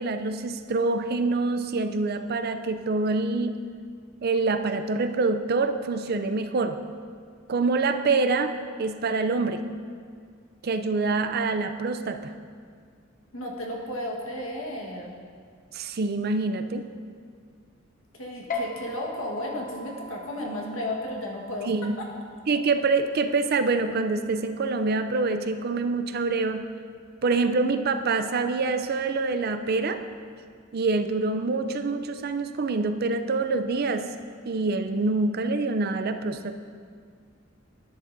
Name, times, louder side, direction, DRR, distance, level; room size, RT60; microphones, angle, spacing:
voice 1, 0.0-3.5 4.2-6.8 7.5-8.5 8.8-9.6 10.6-12.3 15.7-16.9 21.7-21.9 22.5-26.6 27.2-30.0 30.7-34.1 34.5-36.6, right 3 dB, 50° right, 9 dB, 0.5 m, -26 dB
voice 2, 13.3-15.2 18.1-22.1, left 1 dB, 80° left, -1 dB, 1.5 m, -33 dB
sound 1, 18.5-25.3, left 2 dB, 40° left, 0.8 m, -41 dB
12.0 x 10.0 x 2.7 m, 2.1 s
head